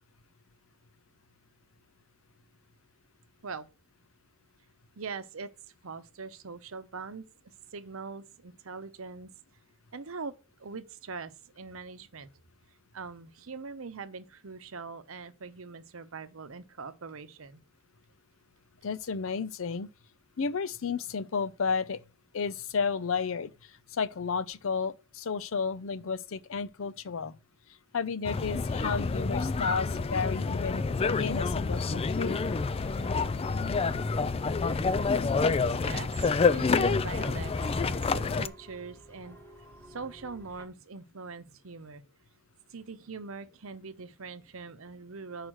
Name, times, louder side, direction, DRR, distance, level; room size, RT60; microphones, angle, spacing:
voice 1, 5.0-5.5 5.8-9.3 9.9-10.3 10.6-12.3 12.9-17.6 35.4-37.5 37.8-39.4 39.8-42.0 42.7-45.5, right 4 dB, 70° right, 0.8 m, -42 dB
voice 2, 18.8-19.9 20.4-22.0 22.3-23.5 23.9-27.3 27.9-32.4, left 5 dB, 70° left, 0.6 m, -32 dB
sound 1, 28.2-38.5, left 4 dB, 30° left, 0.4 m, -28 dB
sound 2, 32.3-40.6, right 1 dB, 15° left, 1.4 m, -51 dB
6.3 x 4.9 x 6.2 m
head